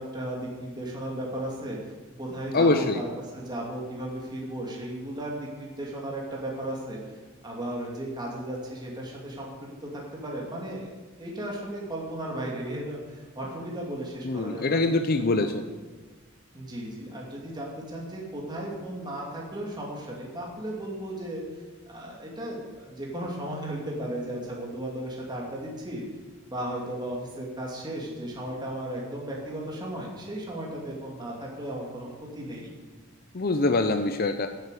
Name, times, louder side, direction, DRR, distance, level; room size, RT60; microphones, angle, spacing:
voice 1, 0.0-1.8 2.2-7.2 7.4-9.5 9.9-10.9 11.2-14.8 15.4-15.5 16.5-21.4 21.9-26.0 26.5-32.1 32.3-32.7, right 1 dB, 20° right, -3 dB, 2.7 m, -35 dB
voice 2, 2.5-3.0 14.2-15.7 33.3-34.5, left 2 dB, 45° left, 8 dB, 0.6 m, -24 dB
10.5 x 9.1 x 8.3 m, 1.4 s
head